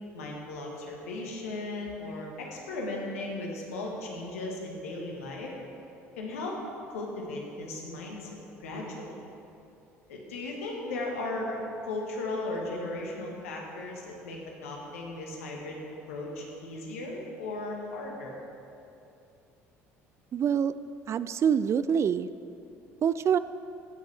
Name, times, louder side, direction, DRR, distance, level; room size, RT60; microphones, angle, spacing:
voice 1, 0.1-5.5 6.2-6.6 6.9-8.3 8.6-9.2 10.1-15.8 16.1-18.4, left 2 dB, 80° left, -1 dB, 1.5 m, -36 dB
voice 2, 20.3-20.7 21.1-22.3 23.0-23.4, right 8 dB, 40° right, 15 dB, 0.3 m, -25 dB
16.0 x 6.6 x 3.4 m, 2.7 s
hypercardioid pair, 60°, 7 cm